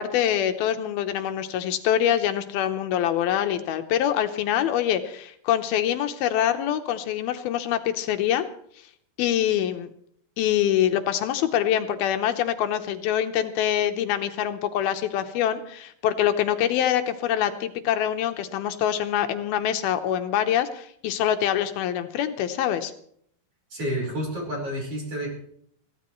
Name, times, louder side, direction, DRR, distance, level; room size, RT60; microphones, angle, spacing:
voice 1, 0.0-8.5 9.2-9.9 10.4-22.9, left 10 dB, 80° left, 8 dB, 2.8 m, -25 dB
voice 2, 23.7-25.3, equal, 40° right, -1 dB, 5.6 m, -29 dB
22.5 x 16.0 x 3.1 m, 0.66 s
omnidirectional pair, 4.3 m